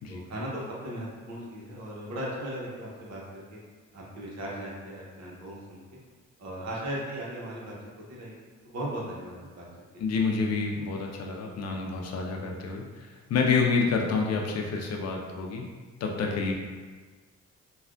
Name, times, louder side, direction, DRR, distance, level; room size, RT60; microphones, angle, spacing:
voice 1, 0.1-3.6 3.9-5.8 6.4-7.7 8.1-9.7 9.9-10.0, right 1 dB, 60° right, -5 dB, 1.0 m, -37 dB
voice 2, 10.0-12.8 13.3-15.7 16.0-16.5, left 4 dB, 55° left, 0 dB, 0.5 m, -28 dB
3.3 x 2.3 x 2.5 m, 1.4 s
cardioid pair, 90°, 30 cm